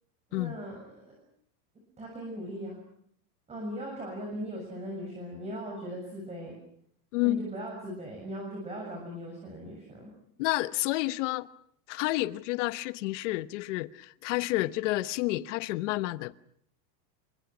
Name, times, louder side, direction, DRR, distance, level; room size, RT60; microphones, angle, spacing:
voice 1, 0.3-1.2 2.0-2.8 3.5-6.5 7.2-10.1, equal, 15° right, 7.0 m, -39 dB
voice 2, 10.4-11.5 11.9-16.3, left 18 dB, 45° left, 1.1 m, -30 dB
29.5 x 25.0 x 6.2 m
supercardioid pair, 165°, 49 cm